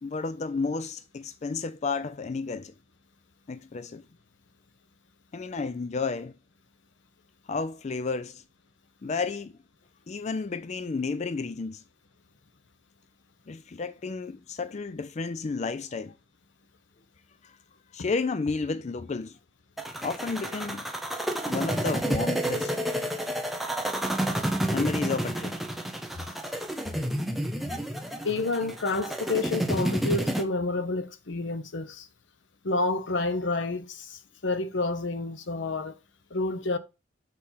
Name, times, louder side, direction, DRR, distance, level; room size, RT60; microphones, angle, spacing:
voice 1, 0.0-2.7 3.5-4.0 5.3-6.3 7.5-8.4 9.0-9.6 10.1-11.8 13.5-16.1 17.4-17.6 17.9-19.4 20.0-20.8 21.5-22.7 24.7-25.6, left 4 dB, 40° left, 0.4 m, -32 dB
sound 1, 19.8-30.4, right 1 dB, ahead, 0.8 m, -30 dB
voice 2, 28.2-32.1 32.6-36.0 36.3-36.8, left 3 dB, 85° left, 0.9 m, -29 dB
6.5 x 4.2 x 5.7 m
head